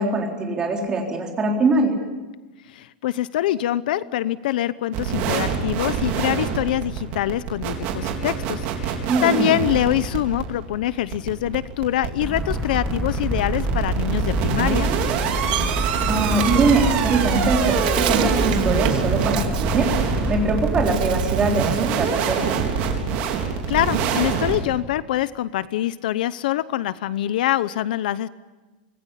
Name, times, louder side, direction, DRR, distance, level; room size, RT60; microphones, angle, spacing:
voice 1, 0.0-1.9 9.1-9.5 16.0-19.9 20.3-22.5, right 3 dB, 15° right, 1 dB, 4.0 m, -22 dB
voice 2, 2.7-14.9 23.3-28.3, left 13 dB, 60° left, 16 dB, 0.8 m, -24 dB
sound 1, 4.9-24.6, right 7 dB, 35° right, 4.2 m, -25 dB
sound 2, 12.2-20.9, equal, ahead, 1.6 m, -27 dB
Bird, 15.0-20.4 20.8-22.0 22.4-24.1, right 11 dB, 60° right, 2.6 m, -33 dB
26.0 x 19.5 x 9.9 m, 1.2 s
supercardioid pair, 180°, 5 cm